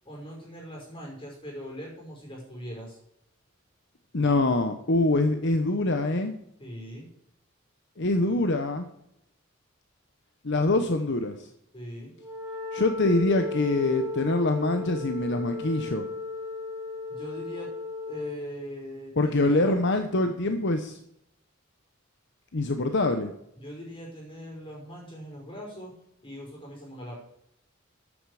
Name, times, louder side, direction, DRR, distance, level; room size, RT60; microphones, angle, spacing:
voice 1, 0.0-3.0 6.6-7.1 11.7-12.1 17.1-17.7 18.1-19.8 23.6-25.9 26.2-27.1, equal, 25° left, -2 dB, 5.6 m, -41 dB
voice 2, 4.1-6.3 8.0-8.9 10.4-11.5 12.7-16.1 19.2-21.0 22.5-23.3, left 2 dB, 60° left, 7 dB, 1.0 m, -24 dB
Wind instrument woodwind instrument, 12.2-18.5, left 4 dB, 15° right, 3.6 m, -35 dB
13.5 x 8.8 x 5.0 m, 0.75 s
head